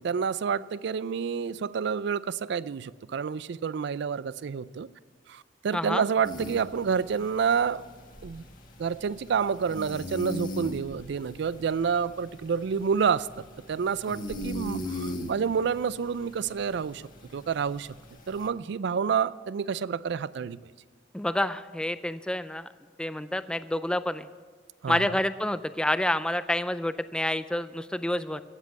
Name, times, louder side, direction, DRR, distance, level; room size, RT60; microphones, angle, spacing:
voice 1, 0.0-4.9 5.3-7.8 8.2-8.4 8.8-13.3 13.7-17.0 17.3-17.9 18.3-20.6 24.8-25.0, right 6 dB, 65° right, 0.4 m, -28 dB
voice 2, 5.7-6.0 21.1-22.7 23.0-24.3 24.9-28.4, left 1 dB, 5° left, 0.4 m, -28 dB
sound 1, 6.2-18.5, left 1 dB, 50° left, 1.8 m, -40 dB
15.5 x 7.5 x 8.2 m
head